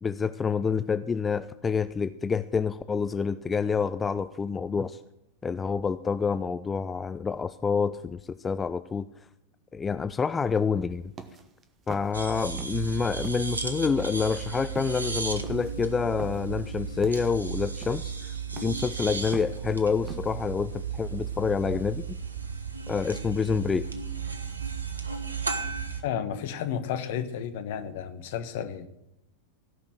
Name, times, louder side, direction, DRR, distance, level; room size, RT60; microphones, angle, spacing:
voice 1, 0.0-5.0 5.4-9.1 9.7-11.1 11.9-18.4 18.6-22.2 22.9-23.9, left 5 dB, 15° left, 13 dB, 0.4 m, -28 dB
sound 1, 10.9-12.9 13.2-20.4, right 5 dB, 25° right, 1.3 m, -44 dB
sound 2, 12.1-26.0, right 5 dB, 75° right, 1.3 m, -34 dB
voice 2, 26.0-28.9, left 9 dB, 50° left, 10 dB, 1.2 m, -32 dB
17.0 x 5.9 x 8.0 m, 0.85 s
figure-of-eight pair, 90°, 0 cm